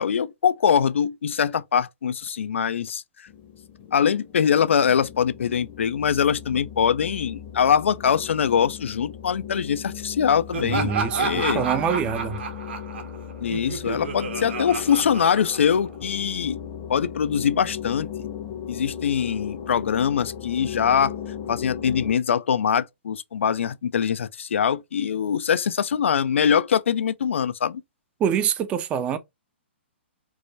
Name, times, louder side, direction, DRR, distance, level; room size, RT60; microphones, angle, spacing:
voice 1, 0.0-3.3 3.9-10.9 11.2-11.6 13.4-16.6 16.9-18.3 18.7-21.1 21.5-27.8, left 7 dB, 85° left, 0.4 m, -23 dB
sound 1, 3.3-22.1, left 8 dB, 40° left, 0.7 m, -37 dB
Laughter, 10.5-16.0, right 5 dB, 65° right, 1.0 m, -31 dB
voice 2, 10.6-12.4 28.2-29.2, right 8 dB, 20° right, 0.4 m, -25 dB
4.6 x 2.1 x 2.6 m
hypercardioid pair, 145°, 7 cm